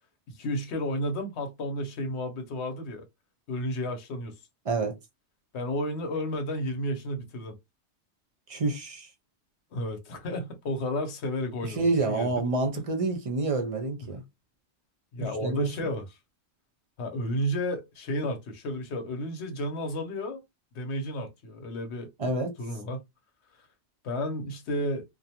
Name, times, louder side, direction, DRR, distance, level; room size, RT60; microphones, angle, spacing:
voice 1, 0.3-3.1 3.5-4.4 5.5-7.6 9.7-12.3 15.1-16.2 17.0-20.4 20.7-22.1 22.6-23.0 24.0-25.0, left 1 dB, 75° left, 1.0 m, -32 dB
voice 2, 4.6-4.9 8.5-9.1 11.6-14.2 15.2-15.7 22.2-22.5, right 3 dB, 45° right, 0.5 m, -28 dB
2.5 x 2.1 x 2.8 m
omnidirectional pair, 1.2 m